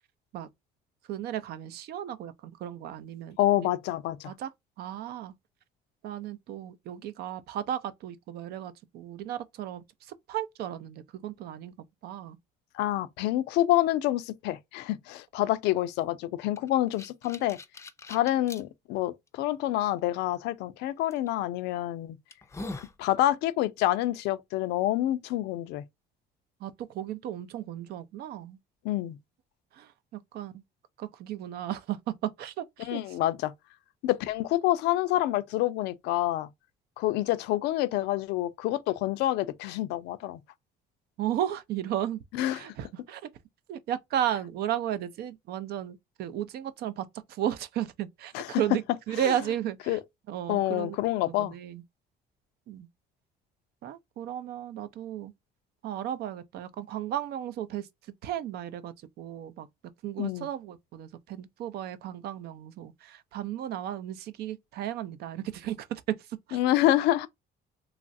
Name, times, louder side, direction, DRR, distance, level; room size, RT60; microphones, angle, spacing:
voice 1, 1.1-3.4 4.3-4.5 4.8-5.3 6.0-11.7 12.0-12.4 26.6-28.6 29.7-30.6 31.0-33.0 41.2-42.2 42.5-43.3 43.7-48.8 49.1-50.0 50.3-51.0 51.3-51.8 52.7-52.9 53.8-55.3 55.8-57.9 58.2-59.7 60.0-66.6, right 11 dB, 70° right, 0.5 m, -34 dB
voice 2, 3.4-4.3 12.7-17.6 18.1-22.2 22.8-25.8 28.8-29.2 32.9-33.5 34.0-36.5 37.0-40.4 42.3-42.6 48.3-48.6 49.2-49.3 49.9-50.0 50.5-51.5 60.2-60.5 66.5-67.3, left 14 dB, 90° left, 0.4 m, -27 dB
sound 1, 16.6-18.6 19.3-19.4 21.1-21.3 21.8-21.9 22.3-23.0, left 2 dB, 15° left, 0.4 m, -41 dB
3.1 x 2.4 x 2.6 m
cardioid pair, 110°, 17 cm